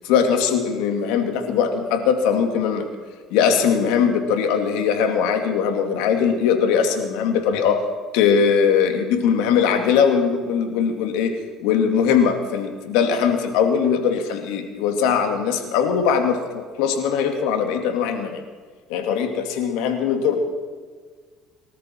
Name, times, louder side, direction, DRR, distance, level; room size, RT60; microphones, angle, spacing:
voice 1, 0.1-2.9 3.3-7.8 8.1-11.3 11.6-18.4 18.9-20.4, left 7 dB, 85° left, 5 dB, 2.4 m, -20 dB
23.0 x 13.5 x 4.6 m, 1.5 s
supercardioid pair, 95°, 0 cm